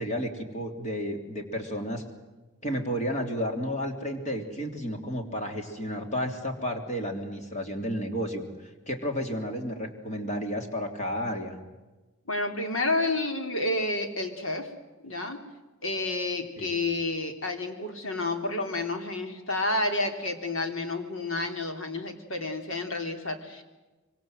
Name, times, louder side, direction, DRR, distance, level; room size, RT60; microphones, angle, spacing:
voice 1, 0.0-2.0 2.6-8.4 8.9-11.6 16.6-16.7, equal, 35° left, 4 dB, 3.3 m, -32 dB
voice 2, 12.2-14.7 15.0-15.4 15.8-23.6, left 2 dB, 70° left, 5 dB, 3.4 m, -30 dB
25.5 x 24.5 x 7.9 m, 1.2 s
head